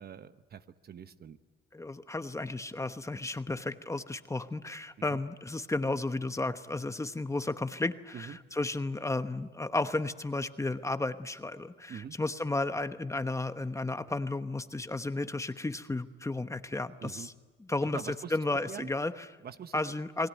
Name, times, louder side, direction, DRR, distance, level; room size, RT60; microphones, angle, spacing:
voice 1, 0.0-1.4 5.1-5.2 8.1-8.4 11.9-12.1 17.0-17.3 17.8-18.3 18.7-18.9 19.4-19.8, right 8 dB, 50° right, 11 dB, 1.0 m, -44 dB
voice 2, 1.7-17.3 17.7-18.0 18.3-19.3 19.7-20.3, left 2 dB, 15° left, 10 dB, 1.1 m, -33 dB
29.5 x 20.0 x 9.2 m, 1.3 s
cardioid pair, 90°, 20 cm